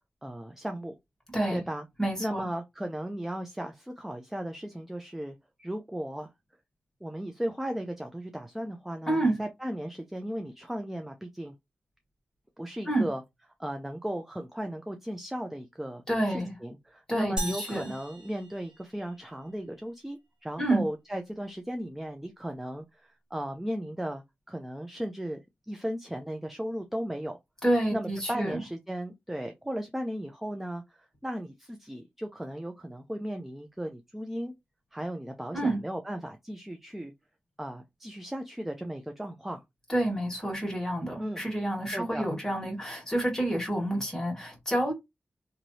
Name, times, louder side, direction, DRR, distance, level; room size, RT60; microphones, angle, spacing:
voice 1, 0.2-1.0 1.5-1.9 2.2-6.3 7.0-11.5 12.6-13.2 13.6-25.4 25.7-27.4 27.9-34.5 34.9-37.1 37.6-39.6 41.2-41.4 41.9-42.3, equal, 5° right, 0.4 m, -36 dB
voice 2, 1.3-1.6 2.0-2.5 9.1-9.4 12.8-13.1 16.1-16.5 17.1-17.9 20.6-20.8 27.6-28.6 35.5-35.8 39.9-44.9, right 1 dB, 15° left, 1.7 m, -28 dB
sound 1, 17.4-19.3, right 1 dB, 20° right, 1.1 m, -38 dB
3.0 x 2.6 x 2.7 m
wide cardioid pair, 100°, 4 cm